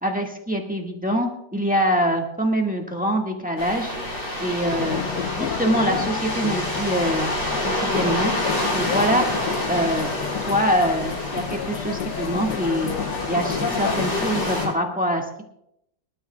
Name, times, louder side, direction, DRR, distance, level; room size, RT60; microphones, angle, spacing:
voice 1, 0.0-3.9 4.4-5.0 5.3-7.3 7.6-8.3 8.7-9.3 9.7-10.2 10.5-12.9 13.3-15.4, equal, 5° right, 1 dB, 1.5 m, -24 dB
sound 1, 3.6-14.7, left 1 dB, 50° left, 4.8 m, -28 dB
sound 2, 4.7-14.7, left 9 dB, 70° left, 1.2 m, -30 dB
25.0 x 12.5 x 2.3 m, 0.77 s
omnidirectional pair, 2.0 m